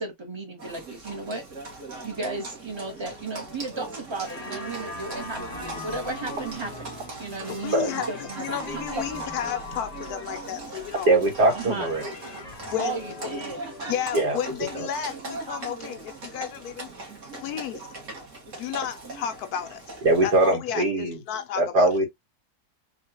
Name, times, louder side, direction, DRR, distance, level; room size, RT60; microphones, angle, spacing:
voice 1, 0.0-1.4 2.0-5.4 5.8-8.4 8.9-9.2 11.5-11.9 12.8-13.6, right 3 dB, 20° right, 0.7 m, -34 dB
Livestock farm animals working animals, 0.6-20.5, right 3 dB, 50° right, 1.5 m, -39 dB
sound 1, 4.3-14.4, left 3 dB, 40° left, 0.6 m, -41 dB
voice 2, 7.6-11.1 12.7-13.0 13.8-16.9 17.3-17.9 18.6-19.8 20.2-21.9, left 9 dB, 75° left, 1.0 m, -32 dB
voice 3, 11.1-12.1 14.1-14.4 14.7-14.9 20.0-21.2 21.6-22.1, right 2 dB, 70° right, 2.0 m, -21 dB
3.8 x 2.4 x 2.8 m
omnidirectional pair, 1.8 m